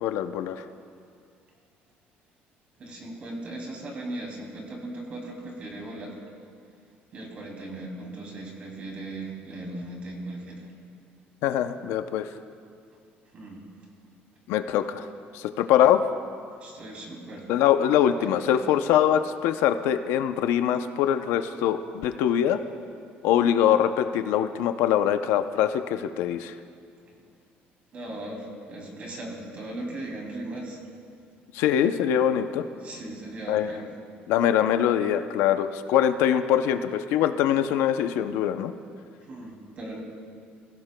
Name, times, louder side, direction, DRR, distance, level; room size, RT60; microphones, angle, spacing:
voice 1, 0.0-0.6 11.4-12.3 14.5-15.1 15.3-16.0 17.5-22.6 23.2-26.5 31.5-32.6 33.5-33.7 34.3-38.7, left 10 dB, 85° left, 9 dB, 0.6 m, -23 dB
voice 2, 2.8-6.2 7.1-10.7 13.3-13.7 16.6-17.5 18.1-18.8 27.1-27.2 27.9-30.8 32.8-33.9 39.2-40.0, right 1 dB, 35° right, 0 dB, 2.7 m, -38 dB
23.5 x 15.5 x 2.2 m, 2.3 s
cardioid pair, 170°, 4 cm